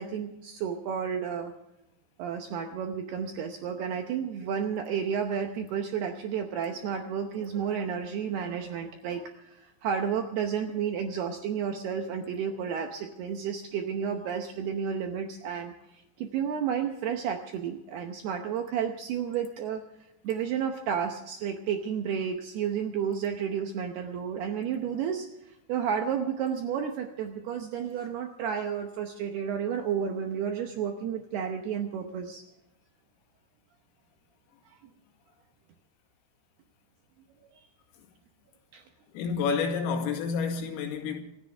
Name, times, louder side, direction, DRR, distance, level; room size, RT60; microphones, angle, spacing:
voice 1, 0.0-1.5 2.2-19.8 20.2-32.4 38.7-38.8, right 7 dB, 85° right, 2.2 m, -32 dB
voice 2, 39.1-41.2, left 5 dB, 80° left, 4.7 m, -29 dB
26.5 x 13.5 x 3.4 m
omnidirectional pair, 6.0 m